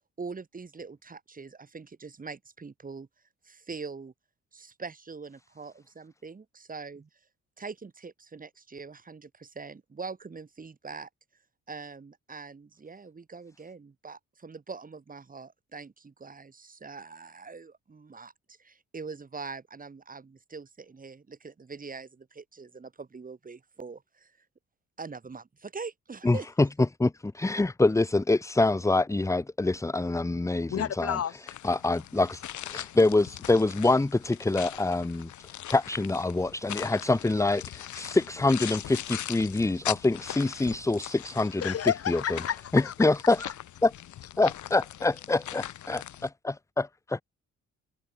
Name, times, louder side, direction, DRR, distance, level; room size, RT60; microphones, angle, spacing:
voice 1, 0.2-3.1 3.4-4.1 4.5-7.1 7.6-11.1 11.7-24.4 25.0-26.5, right 4 dB, 30° right, 2.2 m, -43 dB
voice 2, 26.2-26.7 27.0-27.1 27.3-31.2 31.6-35.3 35.7-41.7 42.1-42.2 42.7-43.5 43.8-43.9 44.4-47.2, left 2 dB, 10° left, 0.8 m, -25 dB
voice 3, 30.7-31.4 41.6-43.1, left 9 dB, 50° left, 1.4 m, -30 dB
sound 1, 31.5-46.3, left 12 dB, 70° left, 3.0 m, -41 dB
cardioid pair, 90°, 30 cm